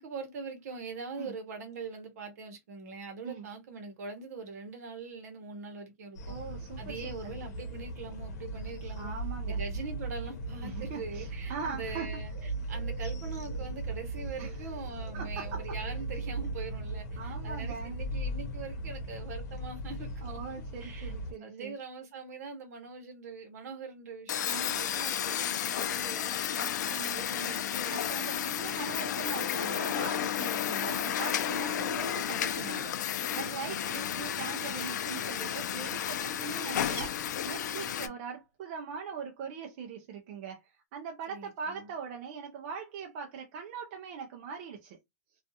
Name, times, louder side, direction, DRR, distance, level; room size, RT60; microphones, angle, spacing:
voice 1, 0.0-6.4 6.8-9.1 9.4-20.4 20.8-21.1 21.4-28.1 30.6-30.9 31.7-31.9 33.6-33.8 37.8-38.1 41.3-41.9, right 4 dB, 65° right, 0.9 m, -43 dB
sound 1, 6.1-21.3, right 2 dB, 65° left, 0.8 m, -38 dB
voice 2, 6.3-7.1 9.0-9.6 10.6-12.1 14.4-14.7 15.1-15.6 17.2-18.0 20.2-21.7 24.5-24.8 26.6-27.6 27.9-45.0, right 6 dB, 40° right, 0.4 m, -41 dB
sound 2, 24.3-38.1, left 10 dB, 85° left, 0.4 m, -32 dB
sound 3, 36.3-38.0, left 1 dB, 40° left, 1.3 m, -48 dB
2.4 x 2.3 x 2.6 m
supercardioid pair, 170°, 9 cm